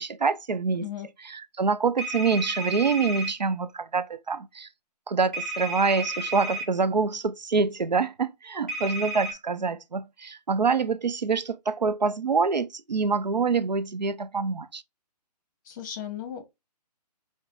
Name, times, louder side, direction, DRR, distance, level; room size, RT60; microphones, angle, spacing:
voice 1, 0.0-0.9 1.2-4.7 5.1-14.8, right 4 dB, 85° right, 0.5 m, -26 dB
sound 1, 2.0-3.3 5.3-6.7 8.7-9.3, right 2 dB, ahead, 1.9 m, -32 dB
voice 2, 15.6-16.4, left 10 dB, 25° left, 1.0 m, -36 dB
4.7 x 2.1 x 3.6 m
figure-of-eight pair, 135°, 21 cm